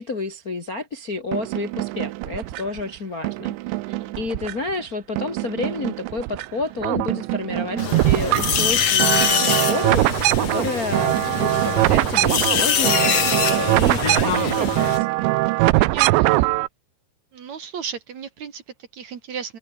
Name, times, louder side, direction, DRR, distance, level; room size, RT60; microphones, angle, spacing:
voice 1, 0.0-15.1, left 3 dB, 85° left, 0.8 m, -30 dB
sound 1, 1.3-2.8 3.2-4.8 5.2-6.5 6.7-16.7, right 20 dB, 85° right, 3.0 m, -22 dB
sound 2, 7.8-15.0, left 7 dB, 45° left, 2.5 m, -24 dB
voice 2, 15.7-16.5 17.3-19.6, right 7 dB, 50° right, 2.7 m, -35 dB
omnidirectional pair, 5.1 m